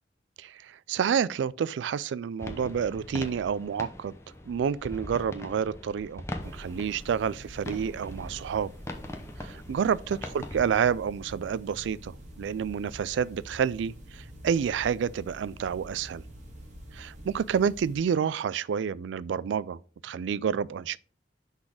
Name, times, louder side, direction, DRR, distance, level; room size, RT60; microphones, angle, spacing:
voice 1, 0.4-4.1 4.5-8.7 9.4-16.2 16.9-21.0, right 7 dB, 70° right, 0.3 m, -29 dB
sound 1, 2.4-10.7, left 1 dB, 15° left, 0.7 m, -41 dB
sound 2, 6.4-18.0, equal, 40° right, 1.6 m, -47 dB
5.9 x 4.1 x 4.8 m
head